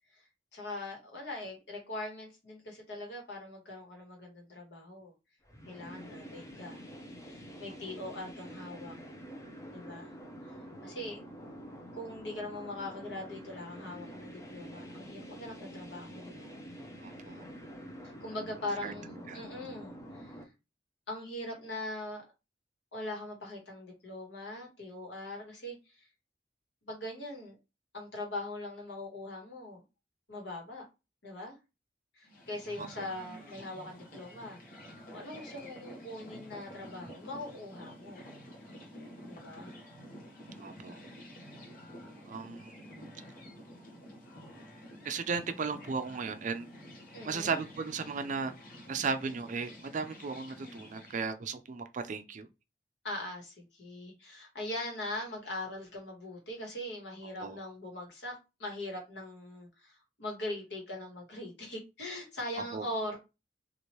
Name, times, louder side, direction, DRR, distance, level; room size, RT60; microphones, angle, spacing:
voice 1, 0.5-5.1 5.7-6.9 7.2-8.9 9.7-10.1 10.4-11.2 11.9-16.5 18.0-20.5 21.1-22.2 22.9-26.1 26.8-27.5 27.9-29.8 30.3-30.8 31.2-31.6 32.1-38.2 39.2-39.7 47.1-47.6 53.0-63.2, left 1 dB, 75° left, 1.3 m, -41 dB
sound 1, 5.5-20.4, equal, 20° left, 0.6 m, -47 dB
voice 2, 17.0-17.4 18.8-18.9 19.3-19.4 32.8-33.1 40.6-41.0 42.3-42.8 45.0-46.7 47.2-48.5 48.9-52.5 57.4-57.6 62.7-62.9, right 5 dB, 45° right, 0.4 m, -36 dB
sound 2, 32.2-51.2, equal, 50° left, 1.0 m, -50 dB
3.0 x 2.5 x 3.0 m
head